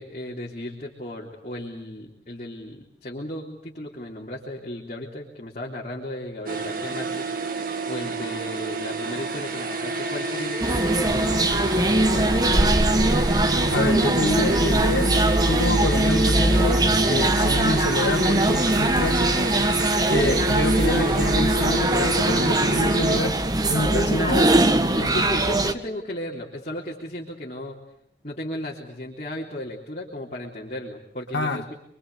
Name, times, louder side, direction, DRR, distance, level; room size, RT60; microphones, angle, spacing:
voice 1, 0.0-7.3 7.9-13.3 24.1-24.4 24.9-27.8 28.2-31.8, left 1 dB, 40° left, 3.5 m, -35 dB
sound 1, 6.5-23.2, right 2 dB, 50° right, 2.1 m, -28 dB
sound 2, 10.6-25.7, right 1 dB, 20° right, 1.4 m, -21 dB
voice 2, 13.7-19.5 20.1-23.4 23.7-24.5 25.0-25.3 31.3-31.6, left 1 dB, 85° left, 2.3 m, -27 dB
28.0 x 23.5 x 8.2 m
head